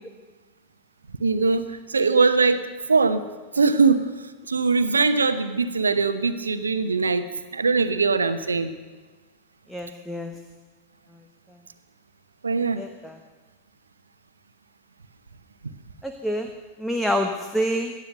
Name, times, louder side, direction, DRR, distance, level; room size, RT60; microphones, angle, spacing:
voice 1, 1.2-3.2 3.5-4.1 4.5-8.7 12.4-12.8, right 4 dB, 75° right, 11 dB, 1.0 m, -21 dB
voice 2, 9.7-10.4 11.1-11.2 11.5-11.6 12.8-13.2 16.0-16.5 16.8-17.9, equal, 5° left, 5 dB, 1.2 m, -27 dB
18.0 x 12.0 x 6.6 m, 1.3 s
figure-of-eight pair, 90°, 0 cm